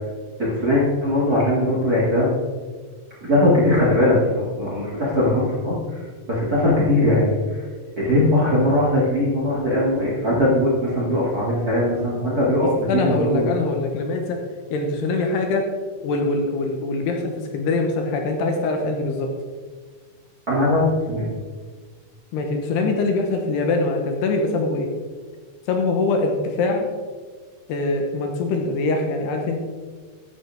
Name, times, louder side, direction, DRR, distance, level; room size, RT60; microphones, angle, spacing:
voice 1, 0.4-2.3 3.2-5.8 6.3-7.4 8.0-13.5 20.5-21.3, left 1 dB, 30° right, -6 dB, 2.0 m, -20 dB
voice 2, 12.6-14.4 14.7-15.6 16.0-19.3 22.3-24.9 25.7-26.9 27.7-29.6, left 3 dB, 70° left, 3 dB, 3.0 m, -23 dB
14.0 x 10.5 x 3.6 m, 1.5 s
omnidirectional pair, 5.2 m